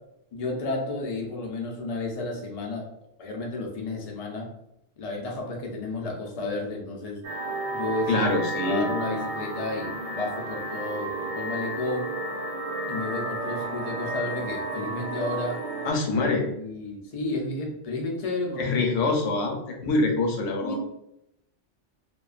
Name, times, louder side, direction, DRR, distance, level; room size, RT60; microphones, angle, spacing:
voice 1, 0.3-2.9 3.2-4.5 5.0-7.2 7.7-8.1 8.6-12.1 12.9-15.6 16.2-19.1 20.6-20.9, left 2 dB, 60° left, 0 dB, 0.4 m, -32 dB
sound 1, 7.2-15.9, right 2 dB, 60° right, 0.8 m, -32 dB
voice 2, 8.1-8.9 15.8-16.5 18.6-20.8, left 3 dB, 80° left, 2 dB, 0.9 m, -25 dB
2.4 x 2.2 x 2.3 m, 0.81 s
omnidirectional pair, 1.3 m